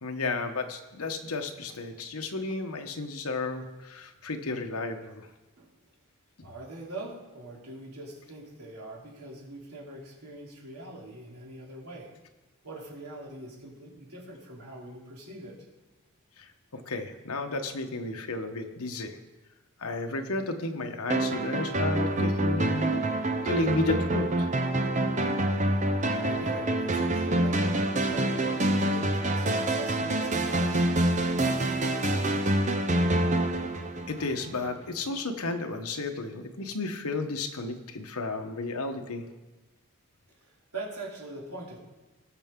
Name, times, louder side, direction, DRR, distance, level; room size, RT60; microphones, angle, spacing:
voice 1, 0.0-5.3 16.4-19.2 19.8-22.9 23.4-24.5 34.1-39.3, left 3 dB, 80° left, 5 dB, 1.1 m, -32 dB
voice 2, 6.4-12.1 12.6-15.6 26.1-30.9 40.4-41.8, right 2 dB, 85° right, -4 dB, 3.2 m, -42 dB
sound 1, 21.1-34.6, right 1 dB, 30° right, 0.7 m, -26 dB
19.5 x 6.8 x 3.7 m, 1.1 s
head